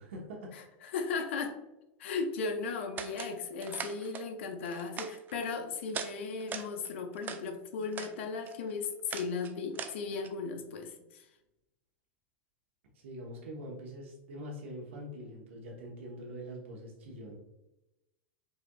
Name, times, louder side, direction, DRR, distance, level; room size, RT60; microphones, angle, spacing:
voice 1, 0.0-0.8 12.9-17.3, equal, 80° right, -2 dB, 1.0 m, -44 dB
voice 2, 0.5-1.6 2.0-11.3, left 4 dB, 75° left, 5 dB, 0.6 m, -36 dB
sound 1, 3.0-3.3 3.6-4.2 4.6-5.5 5.9-6.1 6.4-7.4 7.8-8.1 8.4-10.3, right 7 dB, 30° right, 0.4 m, -41 dB
4.9 x 2.6 x 2.3 m, 0.96 s
hypercardioid pair, 110°, 7 cm